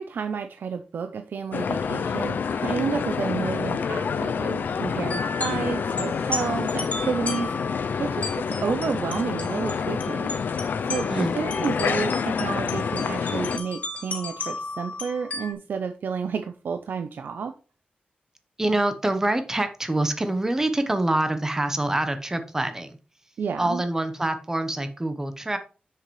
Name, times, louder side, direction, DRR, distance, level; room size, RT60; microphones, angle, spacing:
voice 1, 0.0-10.3 10.8-17.5 23.4-23.8, right 6 dB, 85° right, 8 dB, 0.5 m, -31 dB
sound 1, 1.5-13.6, left 6 dB, 80° left, 0.5 m, -27 dB
sound 2, 5.1-15.5, left 3 dB, 50° left, 1.8 m, -35 dB
voice 2, 11.0-11.4 18.6-23.0 23.6-25.6, right 1 dB, 15° right, 8 dB, 0.9 m, -25 dB
7.6 x 6.7 x 3.2 m, 0.35 s
wide cardioid pair, 170°, 3 cm